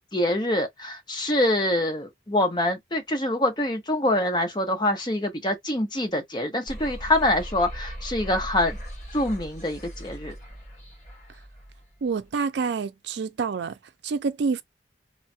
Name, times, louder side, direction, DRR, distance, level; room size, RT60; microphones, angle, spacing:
voice 1, 0.1-8.8 9.1-10.3, left 1 dB, 25° left, 0.7 m, -25 dB
sound 1, 6.7-11.8, equal, 45° left, 1.3 m, -38 dB
voice 2, 12.0-13.8 14.0-14.6, right 5 dB, 75° right, 0.4 m, -27 dB
3.0 x 2.2 x 2.6 m
head